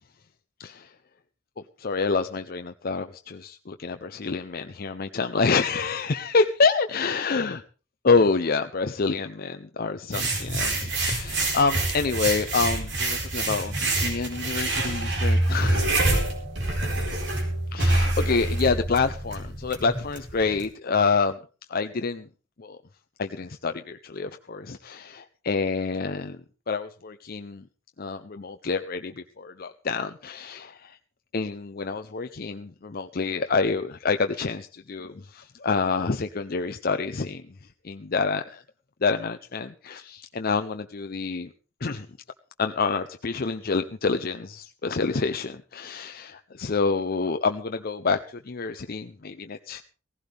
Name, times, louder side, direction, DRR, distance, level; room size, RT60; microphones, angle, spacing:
voice 1, 1.8-7.6 8.0-15.9 17.7-21.4 21.7-22.3 22.6-22.8 23.2-26.4 26.7-27.6 28.0-31.0 31.3-37.4 37.8-38.6 39.0-41.5 41.8-42.1 42.6-49.8, left 4 dB, 50° left, 8 dB, 0.6 m, -27 dB
sound 1, 10.1-20.6, right 2 dB, 65° right, 4.4 m, -26 dB
17.5 x 15.5 x 3.4 m, 0.36 s
head